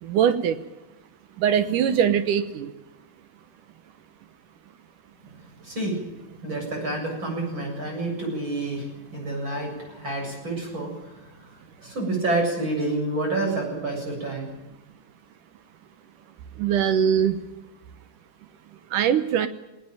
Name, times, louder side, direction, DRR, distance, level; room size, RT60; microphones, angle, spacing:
voice 1, 0.0-0.6 1.4-2.7 16.6-17.4 18.9-19.5, right 8 dB, 70° right, 11 dB, 2.4 m, -22 dB
voice 2, 5.3-14.5, right 2 dB, 30° right, 1 dB, 8.1 m, -29 dB
19.0 x 18.5 x 9.0 m, 0.99 s
omnidirectional pair, 4.2 m